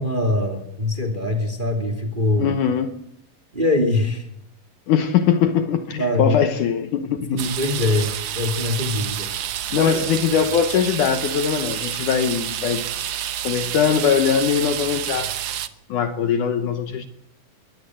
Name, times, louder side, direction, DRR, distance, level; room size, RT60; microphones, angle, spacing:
voice 1, 0.0-2.5 3.5-4.3 6.0-6.4 7.3-9.3 9.7-10.0, left 2 dB, 15° right, 2.2 m, -23 dB
voice 2, 2.4-3.0 4.9-7.4 9.7-12.9 13.4-15.4 15.9-17.1, left 7 dB, 65° left, 2.3 m, -21 dB
sound 1, 7.4-15.7, right 11 dB, 80° right, 1.3 m, -29 dB
22.5 x 17.5 x 7.7 m
omnidirectional pair, 4.3 m